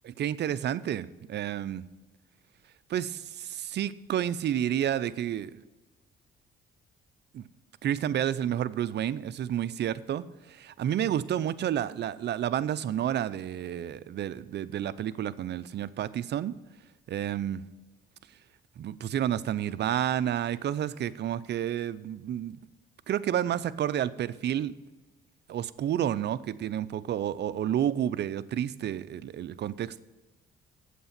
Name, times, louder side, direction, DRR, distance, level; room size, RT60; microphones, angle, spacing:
voice 1, 0.0-1.8 2.9-5.6 7.3-7.5 7.8-16.5 17.1-17.6 18.8-22.6 23.1-24.7 25.5-30.0, right 10 dB, 60° right, 15 dB, 0.6 m, -30 dB
8.3 x 7.9 x 5.9 m, 1.1 s
cardioid pair, 90°, 20 cm